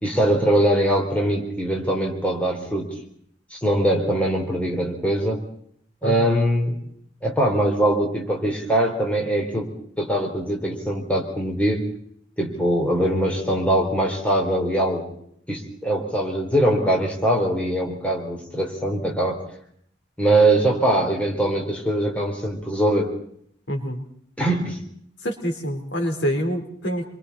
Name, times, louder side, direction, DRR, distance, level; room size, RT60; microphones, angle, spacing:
voice 1, 0.0-2.9 3.5-5.4 6.0-6.8 7.2-11.9 12.4-15.1 15.5-19.4 20.2-23.1 24.4-24.8, right 1 dB, 5° left, 0 dB, 3.9 m, -22 dB
voice 2, 23.7-24.0 25.2-27.1, equal, 80° left, 4 dB, 3.9 m, -26 dB
28.0 x 23.5 x 4.2 m, 0.65 s
head